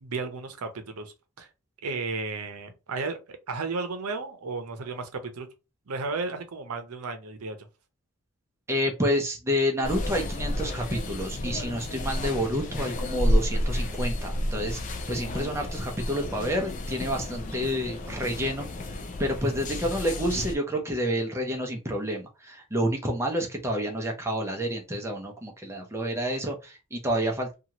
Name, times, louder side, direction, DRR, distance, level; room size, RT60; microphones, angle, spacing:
voice 1, 0.0-1.5 1.8-5.5 5.9-7.7, right 3 dB, 85° right, 0.7 m, -34 dB
voice 2, 8.7-27.5, equal, 10° right, 0.6 m, -29 dB
sound 1, 9.8-20.6, left 1 dB, 35° left, 0.4 m, -31 dB
2.8 x 2.4 x 2.9 m
head